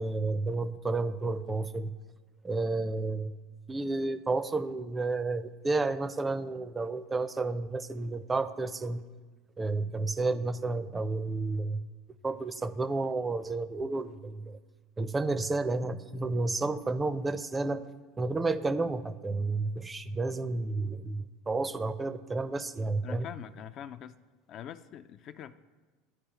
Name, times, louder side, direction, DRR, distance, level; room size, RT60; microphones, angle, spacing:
voice 1, 0.0-1.9 2.4-3.4 3.7-9.0 9.6-11.8 12.2-14.6 15.0-17.8 18.2-23.3, right 3 dB, 20° right, 13 dB, 0.4 m, -31 dB
voice 2, 23.0-24.2 24.5-25.5, left 10 dB, 50° left, 12 dB, 0.3 m, -44 dB
12.0 x 4.7 x 2.9 m, 1.3 s
hypercardioid pair, 80°, 0 cm